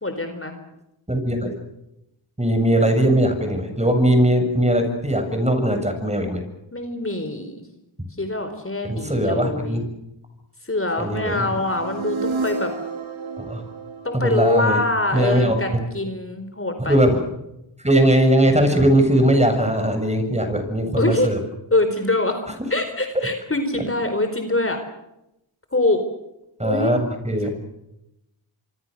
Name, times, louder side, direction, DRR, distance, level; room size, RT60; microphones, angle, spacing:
voice 1, 0.0-0.5 6.7-7.7 8.2-9.8 10.6-12.7 14.0-17.0 21.0-21.3 21.7-22.4 22.7-24.8 25.7-26.0 26.6-26.9, left 2 dB, 25° left, 7 dB, 4.2 m, -24 dB
voice 2, 1.1-1.5 2.4-6.4 8.8-9.9 11.0-11.5 13.4-13.6 14.1-14.8 15.1-15.8 16.9-17.2 17.8-21.4 26.6-27.5, right 1 dB, 15° right, 6 dB, 7.4 m, -19 dB
sound 1, 11.3-15.3, right 3 dB, 75° right, 4.1 m, -31 dB
26.5 x 25.0 x 6.7 m, 0.87 s
cardioid pair, 55°, 48 cm